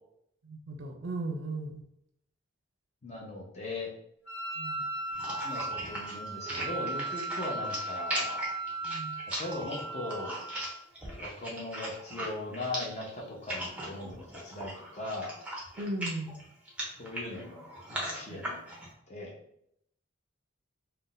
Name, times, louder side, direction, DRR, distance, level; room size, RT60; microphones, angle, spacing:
voice 1, 0.4-1.8 4.6-4.8 8.8-9.2 15.8-16.4 18.3-18.4, right 2 dB, 60° right, 4 dB, 0.5 m, -37 dB
voice 2, 3.0-3.9 5.4-8.5 9.4-10.4 11.2-15.7 17.0-17.6 17.9-18.6 19.1-19.3, left 2 dB, 30° left, -2 dB, 0.7 m, -39 dB
Wind instrument woodwind instrument, 4.3-10.9, right 2 dB, 55° left, 1.0 m, -37 dB
sound 1, 5.1-18.9, right 1 dB, 5° right, 0.6 m, -39 dB
2.5 x 2.1 x 3.8 m, 0.74 s
head